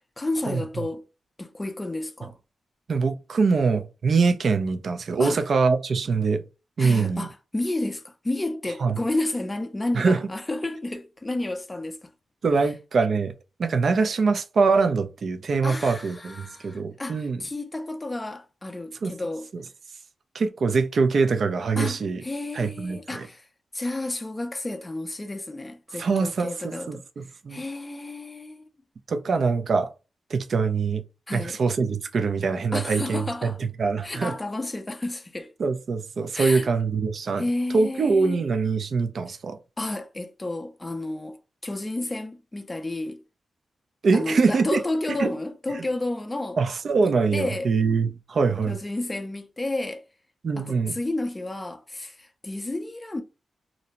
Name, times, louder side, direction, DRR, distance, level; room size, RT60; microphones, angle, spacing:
voice 1, 0.2-1.0 1.4-2.3 5.2-5.5 6.8-12.1 15.6-19.5 21.8-23.5 23.7-27.0 27.5-28.7 31.3-31.6 32.7-33.6 34.0-35.5 36.3-36.7 37.4-38.4 39.3-39.4 39.8-41.4 41.6-43.2 44.1-46.6 47.0-47.7 48.7-50.1 50.6-53.2, left 2 dB, 20° left, 0.4 m, -31 dB
voice 2, 2.9-6.4 6.8-7.3 8.8-9.0 9.9-10.2 12.4-13.3 13.6-17.4 19.0-19.1 20.3-22.2 22.5-23.3 26.0-27.6 29.1-29.9 30.3-31.0 31.3-33.5 33.8-34.3 35.6-37.4 37.7-39.6 44.0-44.8 45.2-45.3 46.6-48.8 50.4-51.0, right 4 dB, 60° right, 0.4 m, -23 dB
2.5 x 2.0 x 2.8 m
cardioid pair, 90°, 0 cm